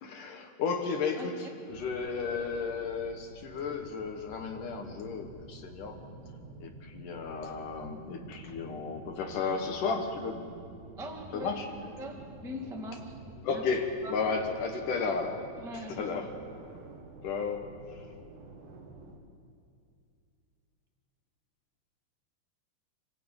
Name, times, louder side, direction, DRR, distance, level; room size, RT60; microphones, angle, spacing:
voice 1, 0.0-5.9 6.6-10.4 11.3-11.7 13.4-15.4 15.7-16.4 17.2-17.7, left 5 dB, 65° left, 4 dB, 2.6 m, -33 dB
voice 2, 1.2-1.5 11.0-11.6 12.0-13.1 13.5-13.6 14.0-14.1 15.6-16.1, left 1 dB, 5° right, 1 dB, 0.3 m, -41 dB
sound 1, 1.7-19.2, right 3 dB, 60° right, 3.3 m, -49 dB
27.5 x 14.5 x 8.9 m, 2.4 s
omnidirectional pair, 4.6 m